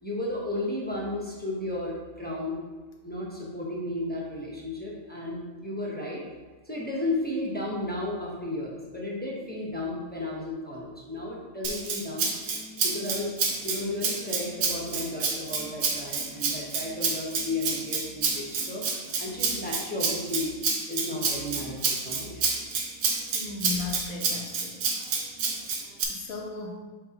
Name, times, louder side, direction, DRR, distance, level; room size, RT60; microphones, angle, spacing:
voice 1, 0.0-2.6 3.0-6.2 6.6-12.3 12.8-13.4 13.6-18.8 19.2-20.5 20.9-22.4, left 2 dB, 10° left, -5 dB, 1.0 m, -33 dB
Rattle (instrument), 11.6-26.0, right 5 dB, 85° right, 1.3 m, -29 dB
voice 2, 23.3-24.8 26.1-26.8, left 4 dB, 80° left, 0 dB, 1.4 m, -36 dB
7.8 x 4.5 x 2.9 m, 1.3 s
omnidirectional pair, 1.5 m